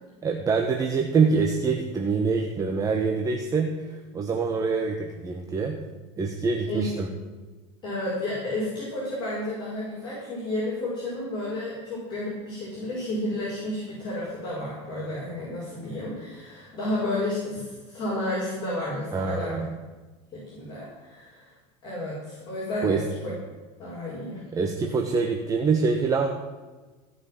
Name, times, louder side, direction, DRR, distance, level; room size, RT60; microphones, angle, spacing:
voice 1, 0.2-5.8 6.2-7.1 19.1-19.7 22.8-23.0 24.5-26.3, right 4 dB, 25° right, 3 dB, 1.2 m, -25 dB
voice 2, 7.8-19.6 20.3-21.5 21.8-23.3 23.8-24.4, left 1 dB, 30° left, -7 dB, 5.5 m, -31 dB
16.5 x 6.3 x 7.6 m, 1.3 s
supercardioid pair, 130°, 15 cm